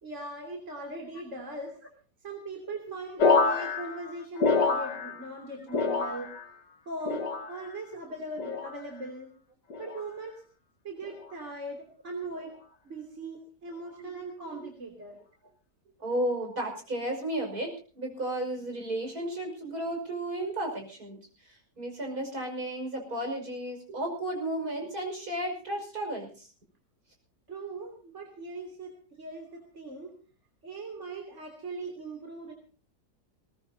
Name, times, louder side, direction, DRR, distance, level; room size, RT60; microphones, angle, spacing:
voice 1, 0.0-1.8 2.2-6.3 6.9-9.3 9.8-10.4 10.8-12.6 12.8-15.2 27.5-30.2 30.6-32.5, right 2 dB, 45° right, 1 dB, 3.5 m, -40 dB
sound 1, 3.2-5.4 5.7-6.6 7.1-7.8 8.4-8.8 9.7-10.1 11.0-11.3, left 4 dB, 85° left, 2.4 m, -27 dB
voice 2, 6.1-6.4 7.9-8.0 14.0-14.1 14.4-14.6 16.0-21.2 21.4-26.5, right 1 dB, 60° right, 3 dB, 6.2 m, -34 dB
21.0 x 19.5 x 2.8 m, 0.37 s
omnidirectional pair, 1.8 m